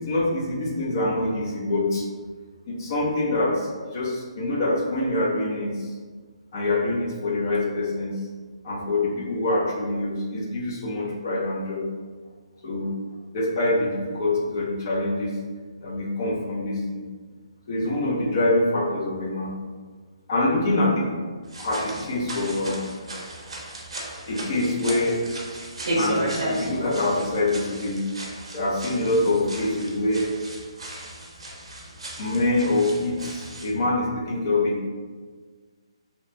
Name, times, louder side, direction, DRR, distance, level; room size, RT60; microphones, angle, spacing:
voice 1, 0.0-2.0 2.7-5.9 6.5-8.2 8.6-11.8 12.6-12.9 13.3-15.3 15.8-17.0 17.7-19.6 20.3-21.1 21.6-23.3 24.0-25.2 25.9-28.0 28.5-30.3 32.2-34.9, left 2 dB, 35° left, -2 dB, 0.5 m, -25 dB
sound 1, 21.4-33.7, right 1 dB, 70° right, 0.7 m, -34 dB
2.8 x 2.1 x 2.5 m, 1.5 s
hypercardioid pair, 165°, 3 cm